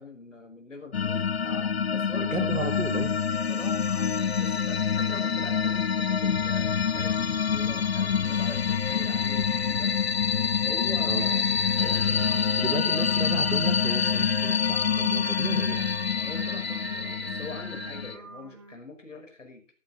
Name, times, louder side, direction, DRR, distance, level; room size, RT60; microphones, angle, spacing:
voice 1, 0.0-2.8 3.5-9.9 10.6-12.8 16.1-19.6, left 2 dB, 70° left, 5 dB, 5.4 m, -43 dB
sound 1, 0.9-18.2, left 6 dB, 50° left, 0.9 m, -26 dB
voice 2, 2.2-3.1 11.0-11.3 12.6-16.0, right 3 dB, 75° right, 8 dB, 2.6 m, -33 dB
sound 2, 6.2-12.4, left 6 dB, 20° left, 0.8 m, -40 dB
Singing, 11.2-18.7, right 4 dB, 20° right, 0.7 m, -43 dB
15.0 x 11.5 x 4.2 m, 0.33 s
figure-of-eight pair, 150°, 38 cm